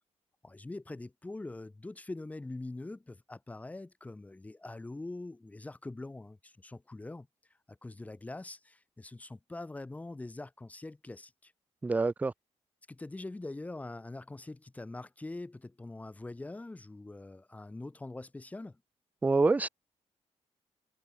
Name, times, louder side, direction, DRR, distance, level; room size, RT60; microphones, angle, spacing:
voice 1, 0.4-7.3 7.7-11.5 12.9-18.8, left 2 dB, 15° left, 1.3 m, -43 dB
voice 2, 11.8-12.3 19.2-19.7, right 3 dB, 15° right, 0.4 m, -26 dB
wide cardioid pair, 165°, 12 cm